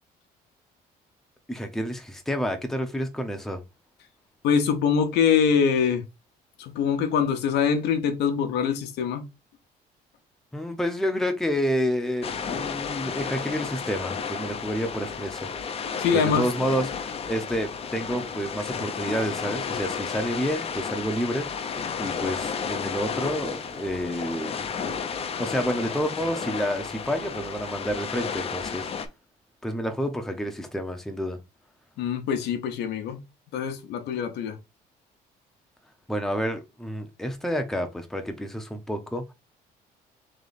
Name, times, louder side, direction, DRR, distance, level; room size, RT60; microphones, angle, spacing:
voice 1, 1.5-3.6 10.5-15.5 16.1-16.9 17.3-21.5 22.0-24.6 25.4-28.9 29.6-31.4 36.1-39.2, equal, ahead, 0.7 m, -29 dB
voice 2, 4.4-6.0 6.6-9.2 16.0-16.5 32.0-33.2 33.5-34.6, left 7 dB, 80° left, 0.9 m, -24 dB
sound 1, 12.2-29.1, left 6 dB, 35° left, 0.6 m, -32 dB
3.3 x 3.0 x 4.0 m
cardioid pair, 110°, 17 cm